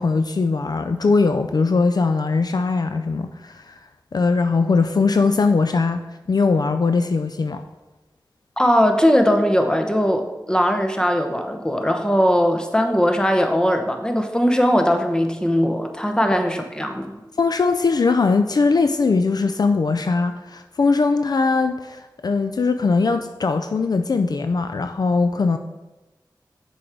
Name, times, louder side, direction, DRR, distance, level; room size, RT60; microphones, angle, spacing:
voice 1, 0.0-3.8 4.1-6.0 6.3-7.6 17.4-25.6, left 4 dB, 60° left, 8 dB, 0.4 m, -20 dB
voice 2, 8.6-17.1, equal, 10° left, 5 dB, 0.9 m, -19 dB
6.3 x 4.8 x 4.5 m, 1.1 s
cardioid pair, 45°, 8 cm